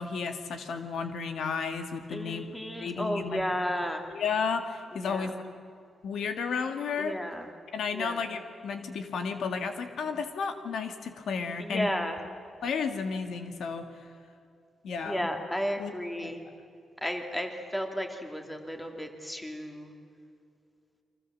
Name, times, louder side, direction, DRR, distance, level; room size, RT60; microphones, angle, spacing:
voice 1, 0.0-2.5 2.8-3.4 4.1-5.4 6.0-7.2 7.7-11.9 12.6-14.0 14.8-15.3 15.8-15.9 16.2-16.3, left 5 dB, 75° left, 7 dB, 1.9 m, -33 dB
voice 2, 2.1-4.0 4.9-5.3 7.0-7.5 7.9-8.2 11.6-12.2 15.0-16.4 17.0-19.9, equal, 5° left, 4 dB, 2.7 m, -33 dB
29.5 x 24.0 x 7.5 m, 2.3 s
wide cardioid pair, 130°, 0 cm